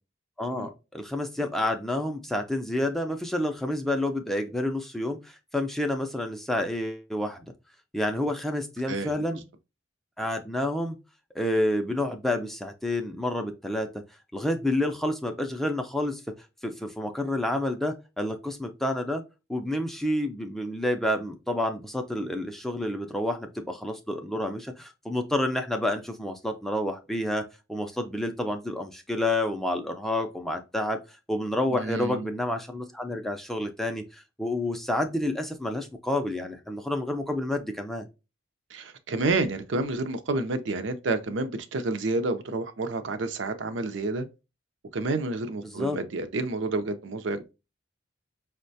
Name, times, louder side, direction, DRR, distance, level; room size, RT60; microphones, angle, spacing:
voice 1, 0.4-7.4 7.9-9.4 10.2-11.0 11.4-14.0 14.3-16.2 16.6-19.2 19.5-31.0 31.3-38.1 45.7-46.0, left 1 dB, ahead, 0.3 m, -29 dB
voice 2, 31.7-32.3 38.7-44.3 44.9-47.5, right 3 dB, 70° right, 0.5 m, -29 dB
5.3 x 2.1 x 2.6 m
head